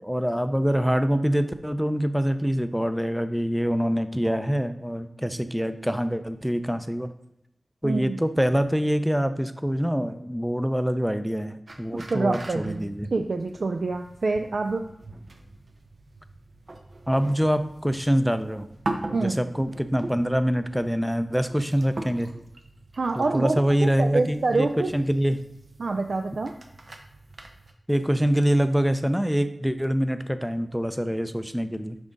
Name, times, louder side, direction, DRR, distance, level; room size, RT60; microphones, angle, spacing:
voice 1, 0.0-7.1 7.8-13.1 17.1-18.7 19.1-22.3 23.2-24.7 24.9-25.4 27.9-32.0, equal, 5° right, 10 dB, 0.5 m, -25 dB
voice 2, 7.8-8.2 12.1-12.8 13.1-14.8 19.1-19.4 23.0-24.9 25.8-26.5, right 3 dB, 70° right, 5 dB, 0.4 m, -26 dB
sound 1, 11.7-27.7, right 2 dB, 55° right, 0.8 m, -41 dB
6.0 x 3.7 x 5.2 m, 0.82 s
wide cardioid pair, 85°, 0 cm